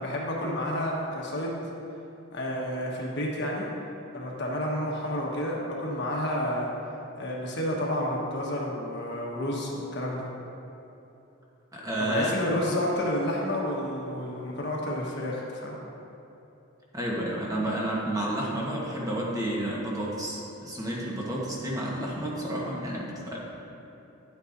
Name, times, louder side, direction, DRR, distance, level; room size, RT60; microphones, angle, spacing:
voice 1, 0.0-1.6 2.3-3.7 4.1-6.7 7.2-10.3 12.0-15.8, left 1 dB, 55° left, -3 dB, 1.3 m, -30 dB
voice 2, 11.7-12.4 16.9-23.4, right 1 dB, 15° right, -4 dB, 1.2 m, -30 dB
10.5 x 8.2 x 2.6 m, 2.9 s
head